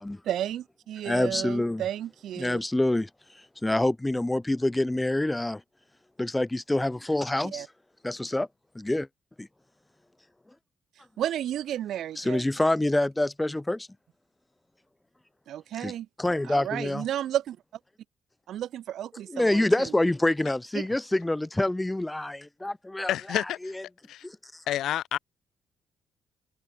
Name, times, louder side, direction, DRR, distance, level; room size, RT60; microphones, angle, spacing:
voice 1, 0.2-2.6 7.4-7.7 11.2-12.4 15.5-16.1 16.4-17.6 18.5-19.9 20.7-20.8, right 11 dB, 75° right, 0.8 m, -32 dB
voice 2, 1.0-1.8 2.4-3.1 3.6-5.6 6.2-7.6 8.0-8.5 8.8-9.1 9.4-9.5 12.2-13.9 15.8-15.9 16.2-17.0 19.3-23.7 24.2-24.4, left 1 dB, 10° left, 0.5 m, -26 dB
voice 3, 23.1-23.7 24.1-24.3 24.7-25.2, left 12 dB, 80° left, 0.4 m, -29 dB
open air
cardioid pair, 90°, 0 cm